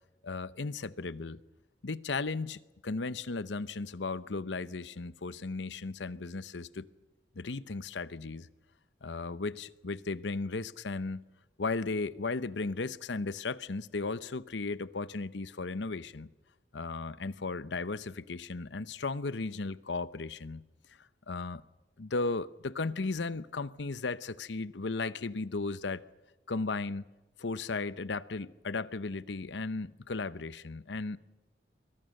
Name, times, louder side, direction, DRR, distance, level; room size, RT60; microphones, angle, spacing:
voice 1, 0.2-1.4 1.8-6.9 7.3-8.5 9.0-11.3 11.6-16.3 16.7-20.6 21.0-21.6 22.0-26.1 26.5-27.0 27.4-31.2, left 3 dB, 75° left, 0.8 m, -35 dB
27.5 x 23.5 x 6.5 m
head